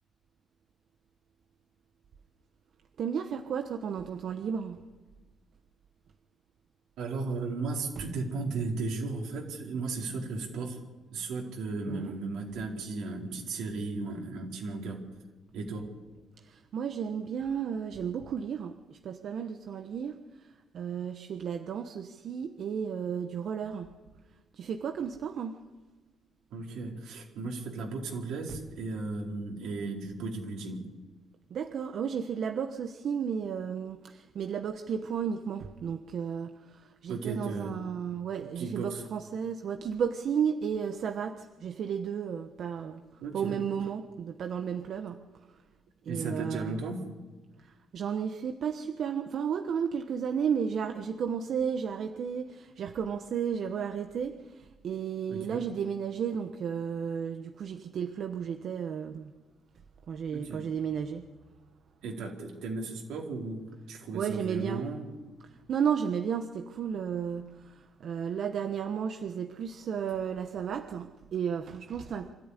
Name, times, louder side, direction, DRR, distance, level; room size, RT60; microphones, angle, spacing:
voice 1, 3.0-4.8 11.9-12.1 16.4-23.9 24.5-25.6 31.5-43.0 43.3-45.2 46.0-46.8 47.6-59.3 60.1-61.3 64.1-64.8 65.5-72.3, right 7 dB, 65° right, 7 dB, 1.1 m, -33 dB
voice 2, 7.0-10.8 11.1-15.0 15.5-15.9 26.5-30.8 37.1-37.8 38.6-39.0 43.2-43.6 46.1-47.0 55.3-55.6 60.3-60.6 62.0-65.1, right 3 dB, 85° right, 0 dB, 4.5 m, -35 dB
25.5 x 13.5 x 10.0 m, 1.3 s
cardioid pair, 90°, 0 cm